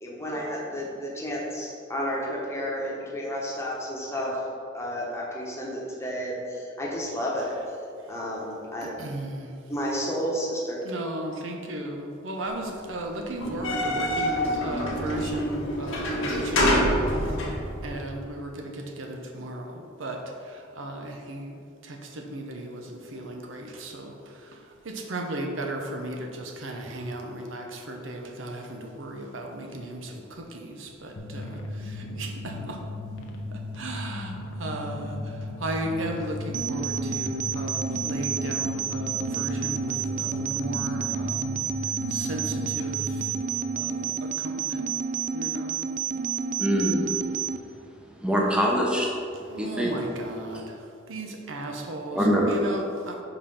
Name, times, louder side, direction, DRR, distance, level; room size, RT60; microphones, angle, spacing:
voice 1, 0.0-4.4 4.7-7.5 8.1-8.9 9.7-10.8, equal, 15° left, -4 dB, 1.1 m, -31 dB
voice 2, 8.8-9.5 10.8-17.4 17.8-32.8 33.5-41.6 42.1-43.3 43.8-44.8 45.3-45.8 49.5-53.2, right 1 dB, 75° right, 2 dB, 0.8 m, -36 dB
sound 1, 13.4-18.0, equal, 90° left, 1.4 m, -26 dB
sound 2, 31.2-43.3, left 1 dB, 70° left, 0.8 m, -36 dB
sound 3, 36.5-47.6, right 6 dB, 40° right, 0.3 m, -30 dB
voice 3, 46.6-47.1 48.2-49.1 49.6-49.9 52.1-52.6, equal, 5° right, -2 dB, 0.8 m, -23 dB
5.5 x 4.3 x 5.5 m, 2.5 s
head